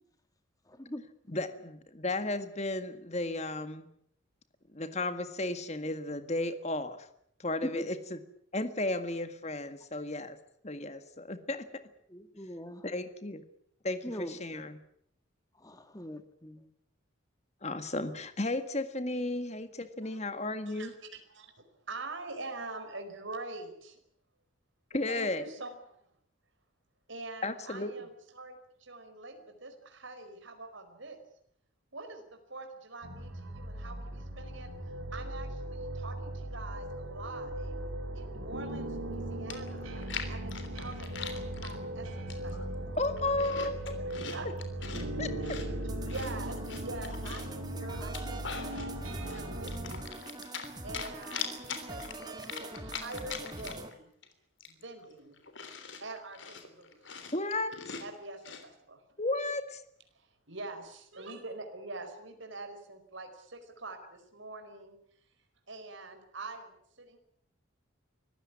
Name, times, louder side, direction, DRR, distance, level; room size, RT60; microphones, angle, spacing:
voice 1, 0.7-1.0 7.7-7.8 12.1-12.8 14.0-14.6 15.6-16.7, equal, 15° left, 9 dB, 1.8 m, -42 dB
voice 2, 1.3-3.9 4.7-7.1 7.4-8.2 8.5-10.4 10.6-11.8 12.8-13.4 13.8-14.8 17.6-20.9 24.9-25.5 27.4-27.9 43.0-44.1 45.2-45.6 57.3-57.8 59.2-59.8, left 2 dB, 30° left, 10 dB, 1.8 m, -34 dB
voice 3, 20.6-24.0 25.1-26.0 27.1-31.2 31.9-34.7 35.1-37.7 38.1-43.0 44.3-44.5 45.4-50.3 50.8-54.1 54.7-55.4 56.0-57.1 58.0-59.0 60.1-65.0 65.7-67.2, right 2 dB, 65° right, 5 dB, 4.9 m, -45 dB
sound 1, 33.0-50.0, right 1 dB, 85° right, 3.9 m, -38 dB
Chewing mastication, 39.1-39.2 39.5-41.8 42.3-42.7 43.0-45.1 45.4-47.6 48.0-48.9 49.3-50.7 50.9-53.9 54.2-54.3 54.6-58.7, left 6 dB, 65° left, 3.4 m, -42 dB
sound 2, 45.9-53.9, right 2 dB, 20° right, 2.3 m, -44 dB
25.0 x 15.5 x 9.7 m, 0.70 s
head